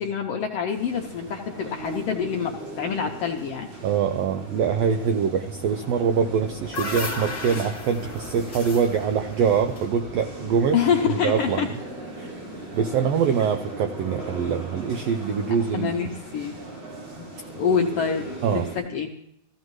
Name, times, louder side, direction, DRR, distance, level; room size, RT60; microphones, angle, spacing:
voice 1, 0.0-3.7 10.7-11.7 15.7-16.6 17.2-17.3 17.6-19.1, left 7 dB, 75° left, 2 dB, 1.4 m, -26 dB
sound 1, 0.7-18.8, right 1 dB, 60° right, 5.8 m, -38 dB
voice 2, 3.8-10.8 11.1-11.7 12.2-12.3 12.7-16.1 18.4-18.7, right 7 dB, 85° right, 7 dB, 1.4 m, -24 dB
sound 2, 6.2-10.5, left 2 dB, 20° left, 1.3 m, -35 dB
15.0 x 14.5 x 3.1 m, 0.77 s
omnidirectional pair, 3.5 m